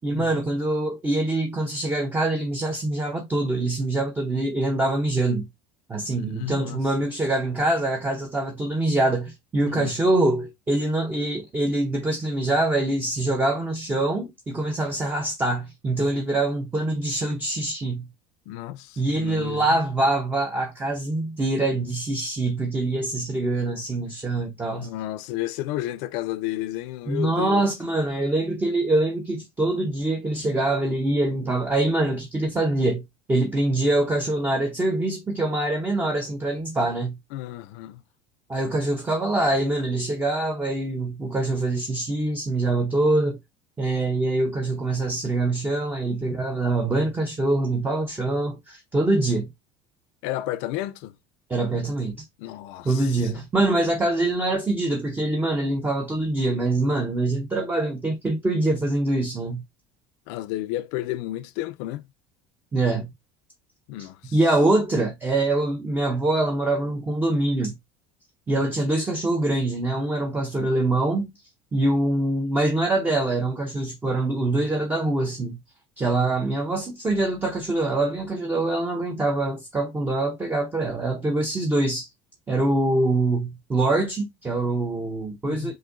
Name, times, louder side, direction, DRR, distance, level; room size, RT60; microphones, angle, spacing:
voice 1, 0.0-5.5 5.9-18.1 19.0-24.9 27.1-33.0 33.3-37.2 38.5-43.4 43.8-49.5 51.5-52.2 52.8-59.6 62.7-63.0 64.0-67.8 68.5-71.3 71.7-75.6 76.0-82.1 82.5-85.7, right 2 dB, 15° right, 0.7 m, -24 dB
voice 2, 6.2-7.1 9.6-9.9 18.5-19.8 24.7-27.7 37.3-38.0 50.2-51.1 52.4-53.4 60.3-62.0 63.9-64.4 68.5-68.7 85.5-85.7, left 14 dB, 75° left, 0.5 m, -32 dB
6.1 x 2.6 x 2.5 m
cardioid pair, 140°, 14 cm